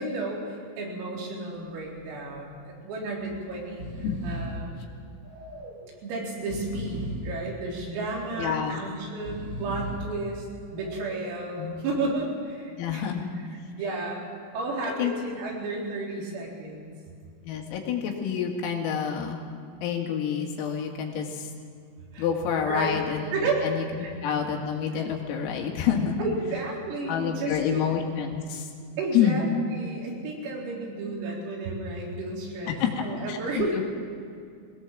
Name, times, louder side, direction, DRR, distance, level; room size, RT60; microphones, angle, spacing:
voice 1, 0.0-3.9 4.2-4.8 6.0-10.5 10.7-13.0 13.8-14.3 14.5-16.9 22.1-22.3 22.7-23.0 23.3-23.7 24.0-24.1 26.2-27.9 29.0-33.8, right 2 dB, 80° right, -3 dB, 6.7 m, -32 dB
Breathing, 1.5-1.9 2.2-2.3 3.2-3.4 3.6-4.7 5.2-5.9 6.3-7.4 7.9-8.6 9.1-10.1 10.7-11.3, equal, 25° right, 5.8 m, -37 dB
voice 2, 8.4-8.8 11.6-11.8 12.8-13.3 14.8-15.1 17.4-19.4 19.8-21.5 22.2-23.8 24.2-26.2 27.1-28.7 29.1-29.4 32.8-33.6, left 8 dB, 85° left, 2 dB, 4.8 m, -28 dB
21.5 x 18.0 x 7.5 m, 2.3 s
omnidirectional pair, 5.9 m